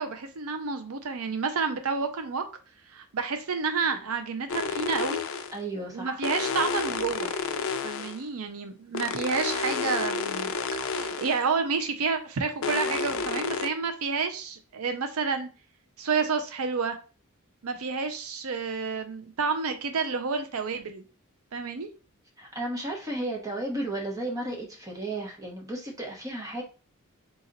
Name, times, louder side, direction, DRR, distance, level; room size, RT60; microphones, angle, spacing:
voice 1, 0.0-2.4 2.9-5.2 5.8-7.3 7.8-15.5 16.0-17.0 17.6-21.0 21.5-21.9, right 5 dB, 80° right, 7 dB, 0.5 m, -30 dB
sound 1, 4.5-5.6 6.2-8.2 8.9-11.5 12.6-13.7, left 5 dB, 65° left, 0.5 m, -30 dB
voice 2, 5.5-6.2 22.4-26.6, right 1 dB, 15° right, 0 dB, 1.0 m, -33 dB
3.9 x 2.9 x 3.9 m, 0.36 s
head